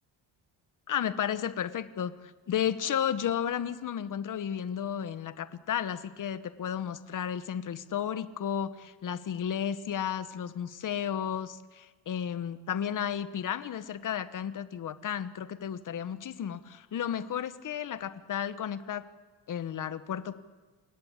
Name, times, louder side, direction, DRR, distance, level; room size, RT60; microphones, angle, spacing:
voice 1, 0.9-19.0 19.5-20.4, left 9 dB, 40° left, 13 dB, 1.0 m, -33 dB
28.0 x 16.5 x 8.7 m, 1.4 s
cardioid pair, 170°, 46 cm